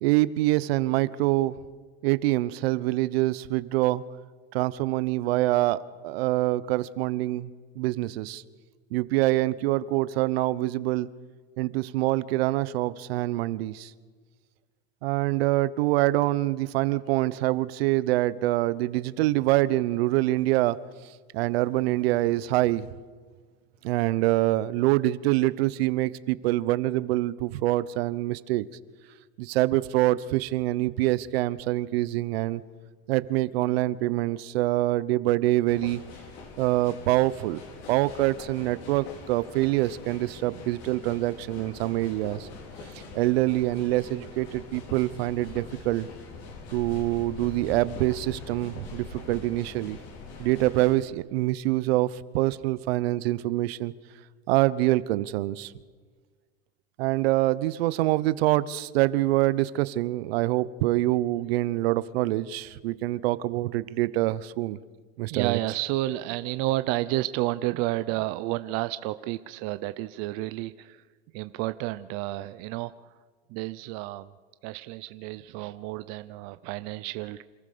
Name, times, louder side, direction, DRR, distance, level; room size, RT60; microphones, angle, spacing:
voice 1, 0.0-1.6 2.0-4.0 4.5-7.5 7.8-8.4 8.9-11.1 11.6-13.9 15.0-22.9 23.8-28.7 29.4-32.6 33.1-36.0 36.6-37.6 37.9-42.5 42.9-46.1 46.7-50.0 50.4-53.9 54.5-55.7 57.0-64.8 65.2-65.6, right 17 dB, 70° right, 17 dB, 1.0 m, -25 dB
sound 1, 35.7-51.0, left 4 dB, 50° left, 4.3 m, -43 dB
voice 2, 65.3-71.0 71.3-73.1 73.5-74.3 74.6-77.4, right 17 dB, 50° right, 13 dB, 0.7 m, -31 dB
27.0 x 15.0 x 6.9 m, 1.5 s
supercardioid pair, 130°, 31 cm